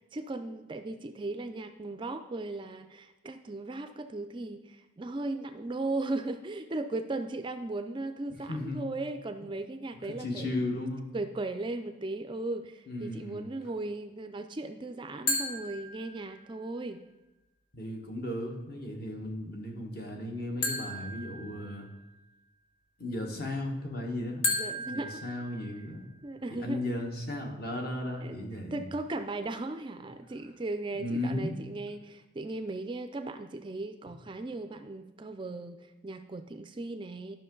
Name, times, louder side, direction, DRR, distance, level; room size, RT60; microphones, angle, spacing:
voice 1, 0.0-10.6 11.1-17.0 24.4-25.2 26.2-26.8 28.2-37.4, right 2 dB, 25° right, 9 dB, 0.3 m, -37 dB
voice 2, 8.5-8.9 10.1-11.1 12.9-13.5 17.7-21.9 23.0-24.4 24.9-26.1 26.6-28.8 30.9-31.5, left 1 dB, 50° left, 2 dB, 1.4 m, -35 dB
sound 1, 15.3-16.6 20.6-22.1 24.4-26.1, left 2 dB, 80° left, 1.8 m, -35 dB
12.5 x 5.7 x 3.8 m, 1.0 s
head